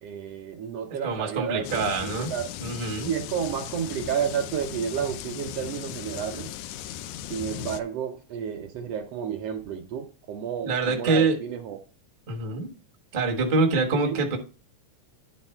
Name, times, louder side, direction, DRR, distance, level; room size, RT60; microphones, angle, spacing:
voice 1, 0.0-2.4 3.1-6.5 7.0-11.8 13.9-14.2, right 8 dB, 70° right, 5 dB, 1.5 m, -31 dB
voice 2, 1.0-2.3 2.6-3.1 10.6-11.4 12.3-12.7 13.1-14.4, right 3 dB, 40° right, 0 dB, 0.6 m, -25 dB
sound 1, 1.6-7.8, left 11 dB, 80° left, 1.8 m, -37 dB
10.5 x 3.9 x 4.3 m, 0.35 s
omnidirectional pair, 3.4 m